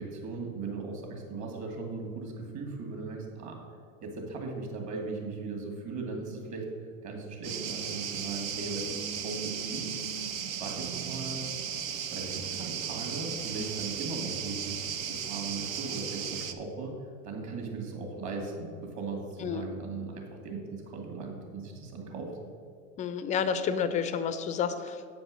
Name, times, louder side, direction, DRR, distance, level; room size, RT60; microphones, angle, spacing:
voice 1, 0.0-3.6 4.0-6.7 7.0-10.0 10.6-11.5 12.1-17.0 17.2-22.3, right 3 dB, 40° right, 1 dB, 2.3 m, -38 dB
sound 1, 7.4-16.5, right 8 dB, 75° right, 0.9 m, -36 dB
voice 2, 23.0-25.1, left 7 dB, 20° left, 11 dB, 0.3 m, -30 dB
8.2 x 5.2 x 6.4 m, 2.3 s
hypercardioid pair, 105°, 41 cm